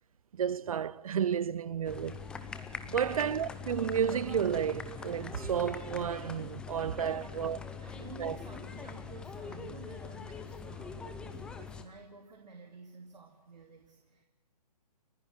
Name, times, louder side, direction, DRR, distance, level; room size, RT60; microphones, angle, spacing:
voice 1, 0.3-2.2 2.9-7.6 8.2-8.4, right 8 dB, 55° right, 0.7 m, -31 dB
sound 1, 1.8-11.8, left 5 dB, 5° left, 0.6 m, -43 dB
voice 2, 2.8-3.2 7.0-14.2, right 4 dB, 90° right, 2.7 m, -52 dB
30.0 x 10.5 x 9.1 m
hypercardioid pair, 160°, 21 cm